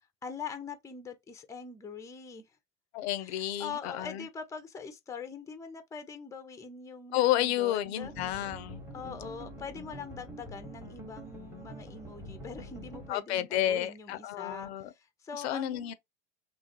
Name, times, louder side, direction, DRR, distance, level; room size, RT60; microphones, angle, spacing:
voice 1, 0.2-2.5 3.2-8.1 8.9-15.9, left 5 dB, 10° left, 0.5 m, -43 dB
voice 2, 2.9-4.2 7.1-8.8 13.1-14.9 15.4-15.9, left 12 dB, 60° left, 0.5 m, -31 dB
sound 1, 8.0-13.1, equal, 5° right, 1.0 m, -45 dB
3.0 x 2.3 x 2.7 m
hypercardioid pair, 80°, 37 cm